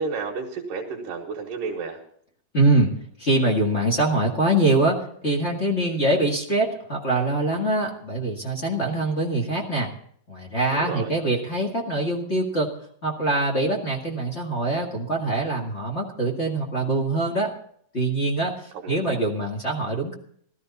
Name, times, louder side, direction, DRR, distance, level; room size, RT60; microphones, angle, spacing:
voice 1, 0.0-2.0 10.7-11.1 18.7-19.2, right 4 dB, 75° right, 1 dB, 3.0 m, -31 dB
voice 2, 2.5-2.9 3.2-5.0 5.2-9.9 10.3-12.7 13.0-17.5 17.9-20.2, right 2 dB, 30° left, -1 dB, 1.4 m, -23 dB
16.5 x 13.0 x 4.1 m, 0.63 s
omnidirectional pair, 4.0 m